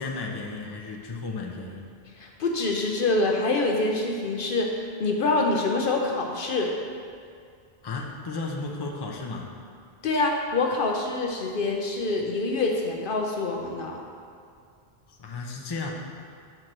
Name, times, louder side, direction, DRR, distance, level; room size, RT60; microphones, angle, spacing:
voice 1, 0.0-1.9 7.8-9.5 15.1-15.9, left 3 dB, 25° left, 0 dB, 0.6 m, -34 dB
voice 2, 2.2-6.7 10.0-14.0, left 3 dB, 60° left, 1 dB, 0.8 m, -26 dB
6.0 x 4.5 x 6.5 m, 2.3 s
omnidirectional pair, 1.1 m